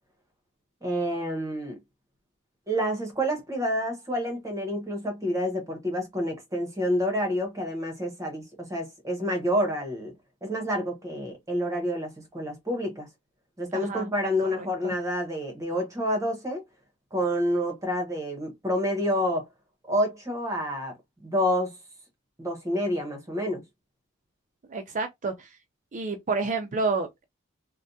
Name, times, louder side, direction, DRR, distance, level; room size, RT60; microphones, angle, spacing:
voice 1, 0.8-1.8 2.7-10.1 10.4-13.1 13.6-16.6 17.1-19.5 19.9-21.7 22.4-23.6, equal, 15° right, 1.0 m, -28 dB
voice 2, 13.7-14.1 14.6-14.9 24.7-25.5 25.9-27.2, right 4 dB, 35° right, 0.4 m, -30 dB
3.3 x 2.2 x 2.6 m
head